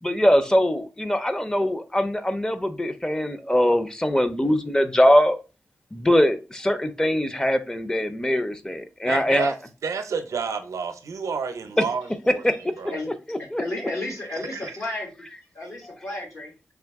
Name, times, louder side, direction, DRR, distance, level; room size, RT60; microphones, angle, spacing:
voice 1, 0.0-5.4 5.9-9.5 11.8-11.9 12.4-12.5 13.3-13.6 15.8-16.0, equal, 15° left, 0.6 m, -22 dB
voice 2, 9.1-9.5 9.8-12.4 12.8-13.0 14.0-14.8, right 5 dB, 90° right, 0.6 m, -30 dB
voice 3, 13.6-15.1 15.5-16.5, left 2 dB, 65° left, 1.7 m, -32 dB
3.7 x 2.8 x 3.5 m
cardioid pair, 55°, 5 cm